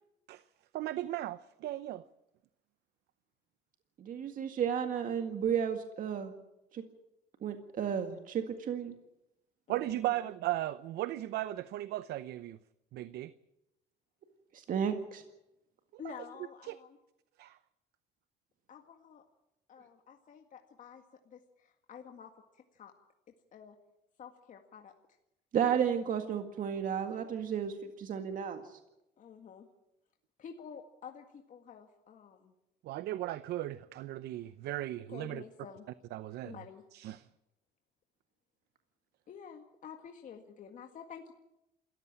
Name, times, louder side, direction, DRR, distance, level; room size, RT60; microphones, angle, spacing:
voice 1, 0.7-2.0 9.7-12.6 12.9-13.3 16.0-16.1 16.6-16.8 17.4-17.6 32.8-35.4 36.1-36.6 36.9-37.2, right 14 dB, 75° right, 0.8 m, -36 dB
voice 2, 4.0-6.3 6.7-6.8 7.4-9.0 14.5-15.2 25.5-28.8, right 8 dB, 55° right, 1.9 m, -33 dB
voice 3, 9.7-10.3 16.0-16.9 18.7-19.2 19.7-22.9 23.5-23.8 24.2-24.9 29.2-29.7 30.4-32.5 35.1-35.9 36.4-36.8 39.3-41.3, left 7 dB, 50° left, 1.9 m, -50 dB
27.5 x 14.5 x 8.9 m
cardioid pair, 110°, 17 cm